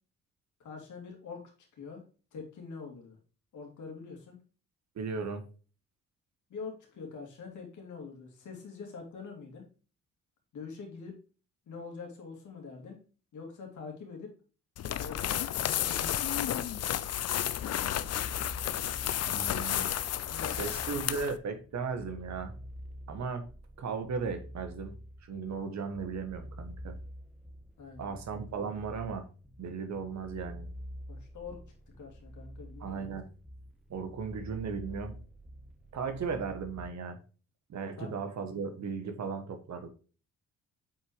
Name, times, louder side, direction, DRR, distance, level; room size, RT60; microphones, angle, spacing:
voice 1, 0.6-1.4 1.8-2.0 2.3-3.2 3.5-4.4 6.5-9.6 10.5-11.2 11.7-13.0 13.3-14.3 15.0-16.7 20.3-20.8 27.8-28.2 31.1-31.6 32.0-33.1 38.0-38.1, left 5 dB, 70° left, 1 dB, 2.6 m, -44 dB
voice 2, 4.9-5.4 19.2-19.9 20.4-22.5 23.1-23.5 23.8-24.9 25.2-27.0 28.0-29.2 29.6-30.7 32.8-33.2 33.9-35.1 35.9-37.2 37.7-39.9, right 5 dB, 60° right, 7 dB, 1.4 m, -36 dB
sound 1, 14.8-21.4, left 11 dB, 50° left, 0.6 m, -32 dB
sound 2, 17.9-36.9, equal, ahead, 1.2 m, -48 dB
7.8 x 4.6 x 3.1 m, 0.37 s
supercardioid pair, 60°, 31 cm